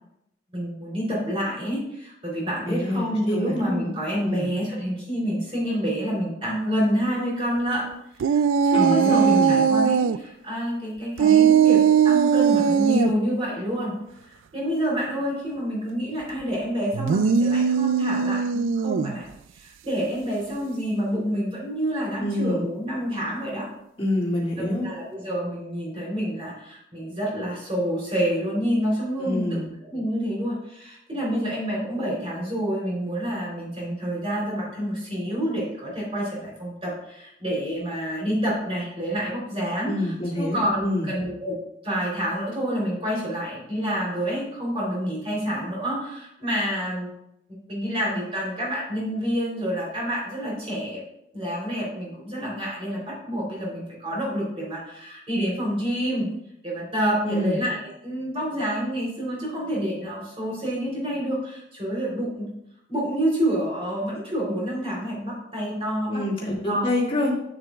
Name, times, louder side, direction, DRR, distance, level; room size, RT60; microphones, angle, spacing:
voice 1, 0.5-7.9 8.2-13.9 14.2-19.2 19.6-23.7 24.6-41.6 41.8-47.1 47.7-51.0 51.3-56.3 56.6-62.5 62.9-66.9, equal, 30° right, -4 dB, 3.5 m, -28 dB
voice 2, 2.7-3.9 4.2-4.5 8.7-9.6 22.2-22.6 24.0-24.9 29.2-29.7 39.8-41.1 57.2-57.6 66.1-67.3, left 1 dB, 30° left, -3 dB, 2.1 m, -27 dB
sound 1, 8.2-10.2 11.2-13.1 16.9-19.2, right 7 dB, 85° right, 0.3 m, -19 dB
11.0 x 8.9 x 2.4 m, 0.79 s
head